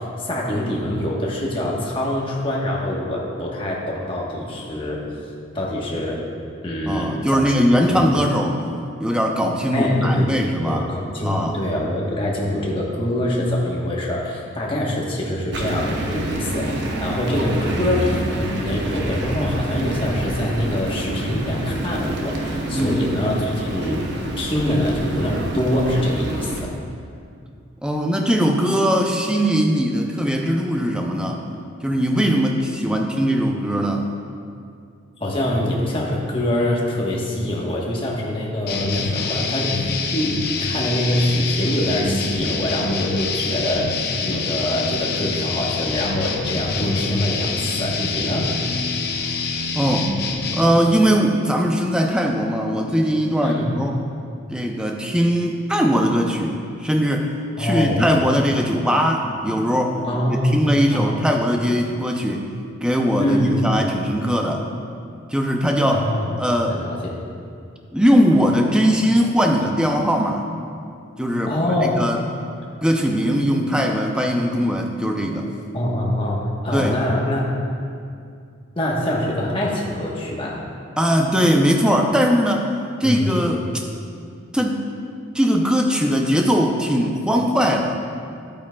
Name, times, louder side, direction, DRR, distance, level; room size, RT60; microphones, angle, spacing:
voice 1, 0.0-5.0 5.5-6.2 6.6-7.5 7.9-8.0 9.7-10.4 10.6-24.1 24.4-26.7 35.2-48.5 53.4-53.7 57.6-58.1 60.1-60.6 60.9-61.2 63.2-63.9 65.9-66.3 66.7-67.1 71.5-71.9 75.7-77.4 78.8-80.6 83.0-83.4, left 1 dB, 25° left, -3 dB, 1.2 m, -24 dB
voice 2, 6.9-8.6 9.0-10.9 11.2-11.6 17.4-17.6 22.6-23.0 27.8-31.4 31.8-34.1 49.7-50.2 50.5-54.0 54.5-57.3 57.6-62.5 62.8-64.7 65.3-66.1 66.4-66.8 67.9-70.5 71.2-72.2 72.8-75.5 76.7-77.0 81.0-82.7 83.0-83.7 84.5-84.8 85.3-88.0, equal, 5° right, 1 dB, 0.5 m, -20 dB
sound 1, 15.5-26.6, right 1 dB, 55° right, 0.8 m, -27 dB
sound 2, 38.7-50.7, left 4 dB, 50° left, 0.6 m, -25 dB
11.0 x 8.7 x 2.3 m, 2.3 s
head